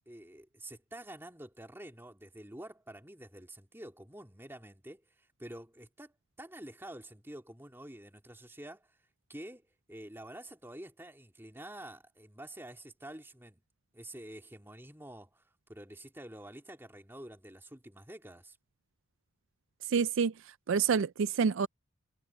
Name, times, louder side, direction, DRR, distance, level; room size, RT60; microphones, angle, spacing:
voice 1, 0.1-9.0 9.3-13.6 13.9-18.6, right 1 dB, 10° right, 2.9 m, -48 dB
voice 2, 19.9-20.3 20.7-21.7, right 6 dB, 60° right, 0.4 m, -27 dB
head